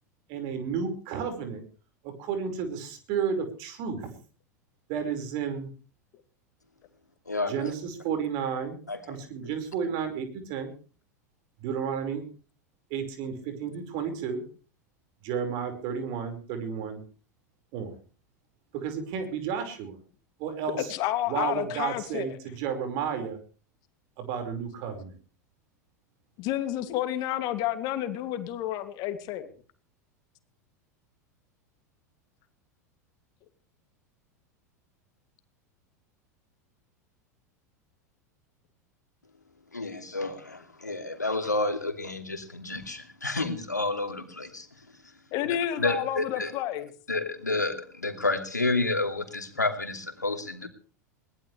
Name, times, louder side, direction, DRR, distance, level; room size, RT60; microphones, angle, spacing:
voice 1, 0.3-1.6 2.0-4.2 4.9-5.7 7.5-8.8 9.1-10.7 11.6-12.2 12.9-14.4 15.2-17.0 17.7-18.0 18.7-20.0 20.4-20.9 21.3-23.4 24.2-25.1, right 7 dB, 50° right, 5.2 m, -32 dB
voice 2, 7.3-7.7 8.9-9.0 39.7-44.7 45.8-46.5 47.1-50.7, left 2 dB, 85° left, 2.7 m, -30 dB
voice 3, 20.9-22.4 26.4-29.5 45.3-46.9, left 12 dB, 45° left, 2.6 m, -30 dB
22.0 x 19.0 x 3.4 m
figure-of-eight pair, 85°, 9 cm